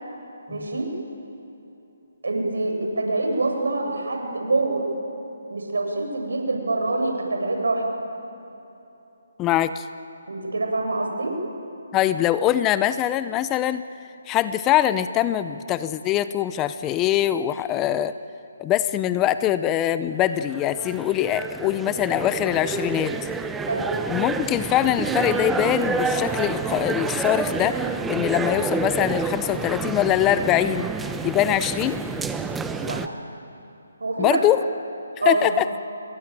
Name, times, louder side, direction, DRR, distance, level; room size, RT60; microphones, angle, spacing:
voice 1, 0.5-0.9 2.2-4.9 5.5-7.9 10.3-11.3 23.7-23.9 32.8-33.0 34.0-34.5 35.2-35.5, right 2 dB, 80° right, 3 dB, 7.5 m, -25 dB
voice 2, 9.4-9.8 11.9-13.8 14.3-18.1 18.6-23.1 24.1-30.9 31.2-32.0 34.2-34.6 35.3-35.6, left 12 dB, 15° left, 13 dB, 0.6 m, -23 dB
sound 1, 20.3-33.1, right 4 dB, 5° right, 0.9 m, -28 dB
28.5 x 23.0 x 9.2 m, 2.9 s
hypercardioid pair, 155°, 0 cm